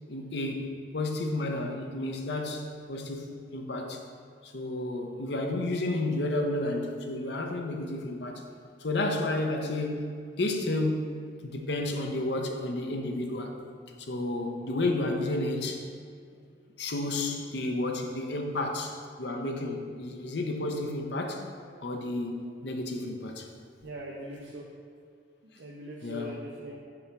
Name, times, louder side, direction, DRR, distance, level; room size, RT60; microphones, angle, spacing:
voice 1, 0.1-4.0 4.4-8.4 8.8-13.5 14.0-15.8 16.8-21.5 21.8-23.5 26.0-26.4, left 2 dB, 65° left, 3 dB, 0.7 m, -31 dB
voice 2, 23.8-24.7 25.4-26.8, equal, 70° right, -2 dB, 0.6 m, -41 dB
7.0 x 3.4 x 5.9 m, 2.3 s
head